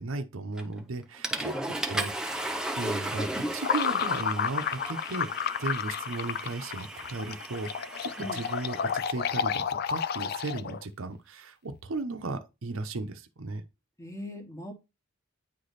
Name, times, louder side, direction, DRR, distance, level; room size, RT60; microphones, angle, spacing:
voice 1, 0.0-2.1 2.8-13.6, right 3 dB, 75° right, 0.7 m, -36 dB
Water / Toilet flush, 0.6-0.8 1.2-9.1, right 1 dB, 5° right, 0.6 m, -36 dB
voice 2, 1.4-1.8 8.2-8.4 14.0-14.7, left 1 dB, 15° left, 1.2 m, -40 dB
sound 1, 3.6-10.8, left 7 dB, 50° left, 0.4 m, -31 dB
9.2 x 3.3 x 4.0 m
head